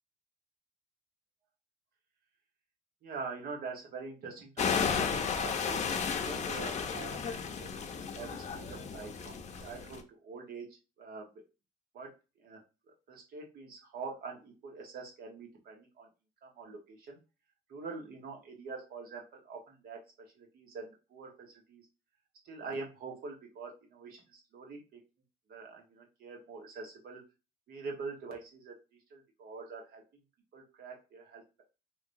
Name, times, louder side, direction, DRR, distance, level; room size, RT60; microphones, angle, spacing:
voice 1, 3.0-10.7 11.0-11.3 11.9-12.1 12.4-12.6 13.1-16.1 16.4-17.2 17.7-20.0 20.3-21.8 22.4-25.0 25.5-27.2 27.7-28.8 29.1-30.0 30.5-31.6, right 4 dB, 65° right, 1 dB, 1.2 m, -45 dB
sound 1, 4.6-10.0, left 6 dB, 45° left, 0.7 m, -33 dB
3.3 x 2.9 x 2.6 m, 0.29 s
cardioid pair, 110°, 17 cm